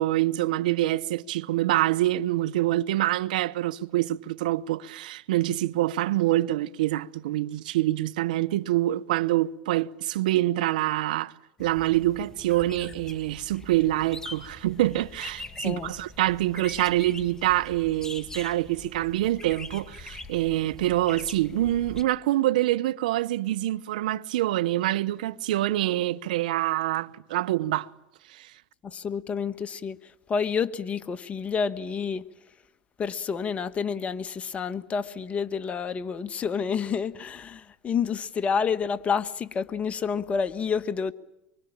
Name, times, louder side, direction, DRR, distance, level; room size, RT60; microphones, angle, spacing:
voice 1, 0.0-11.3 11.6-27.9 28.3-28.5, right 15 dB, 80° right, 1.0 m, -26 dB
sound 1, 11.6-22.0, left 3 dB, 15° left, 2.2 m, -43 dB
voice 2, 28.8-32.3 33.0-41.1, left 6 dB, 30° left, 1.4 m, -29 dB
24.5 x 24.0 x 8.9 m
hypercardioid pair, 95°, 4 cm